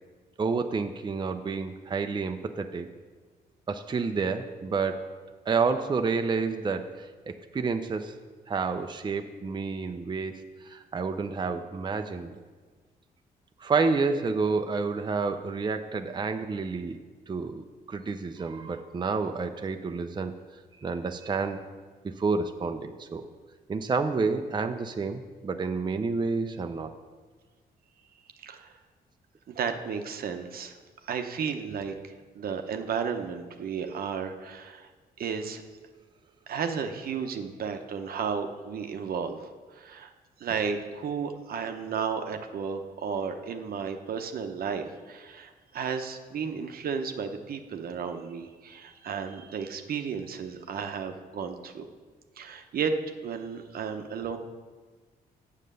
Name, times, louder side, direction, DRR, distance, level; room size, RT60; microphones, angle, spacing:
voice 1, 0.4-2.9 3.7-5.1 5.5-8.1 8.5-10.3 10.6-12.3 13.6-17.0 17.3-20.3 20.8-21.6 22.2-23.3 23.7-26.9, right 4 dB, 30° right, 6 dB, 0.5 m, -29 dB
voice 2, 28.4-28.7 29.5-30.8 31.0-31.9 32.3-34.9 35.2-35.6 36.5-40.1 40.4-51.9 52.4-52.9 53.2-54.4, right 6 dB, 65° right, 6 dB, 0.8 m, -33 dB
7.5 x 6.5 x 6.7 m, 1.4 s
cardioid pair, 80°, 16 cm